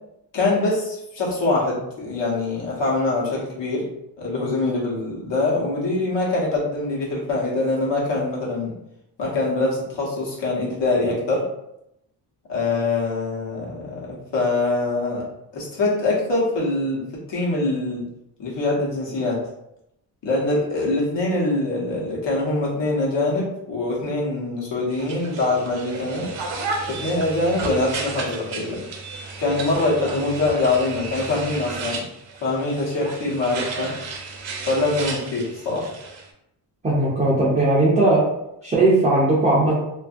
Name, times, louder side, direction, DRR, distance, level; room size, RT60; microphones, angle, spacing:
voice 1, 0.3-3.9 4.2-8.7 9.2-11.4 12.5-15.2 15.5-17.0 17.3-18.0 18.4-19.4 20.2-26.3 26.9-28.8 29.4-32.0 32.4-33.9 34.6-35.9, left 2 dB, 70° left, -4 dB, 1.1 m, -24 dB
sound 1, 24.9-36.3, right 4 dB, 85° right, 0.6 m, -33 dB
voice 2, 36.8-38.2 38.6-39.7, right 2 dB, 20° right, -7 dB, 0.5 m, -18 dB
2.6 x 2.5 x 2.4 m, 0.81 s
wide cardioid pair, 165°, 44 cm